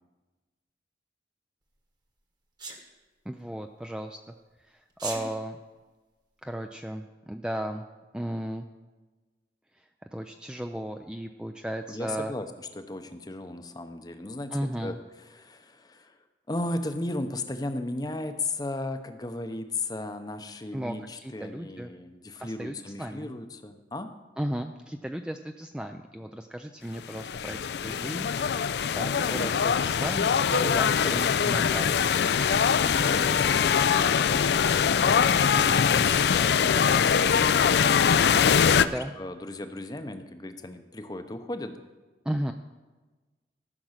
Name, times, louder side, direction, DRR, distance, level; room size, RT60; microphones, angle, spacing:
Sneeze, 2.6-2.8 4.9-5.2, right 3 dB, 25° right, 1.2 m, -35 dB
voice 1, 3.3-4.2 4.6-5.6 6.4-7.8 8.1-8.7 9.7-12.3 14.5-15.0 20.7-21.9 22.4-23.3 24.4-32.0 38.8-39.1 42.2-42.5, equal, 5° right, 5 dB, 0.3 m, -35 dB
voice 2, 11.9-15.0 15.3-16.2 16.5-24.1 32.8-33.8 34.9-41.8, left 2 dB, 20° left, 8 dB, 0.7 m, -36 dB
sound 1, 27.0-38.8, left 7 dB, 70° left, 0.4 m, -23 dB
14.5 x 6.0 x 6.5 m, 1.2 s
head